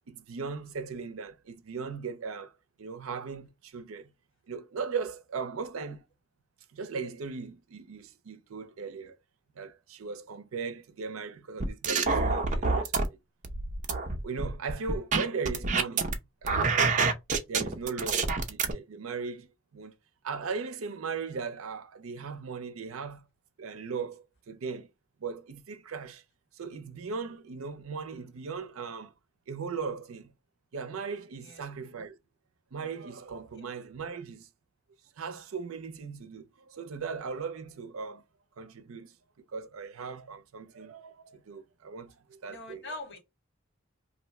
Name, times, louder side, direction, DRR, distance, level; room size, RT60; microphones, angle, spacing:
voice 1, 0.1-4.1 4.5-6.0 6.7-9.2 9.6-13.2 14.2-16.9 17.5-19.9 20.2-23.3 23.6-24.9 25.2-26.2 26.5-29.1 29.5-30.3 30.7-32.2 32.7-34.5 35.2-38.2 38.6-39.1 39.5-43.0, right 5 dB, 80° right, 0.5 m, -38 dB
sound 1, 11.6-13.0 13.4-16.1 16.4-18.7, right 4 dB, 40° right, 0.5 m, -27 dB
voice 2, 42.5-43.2, left 2 dB, 55° left, 1.5 m, -42 dB
2.6 x 2.1 x 4.0 m
head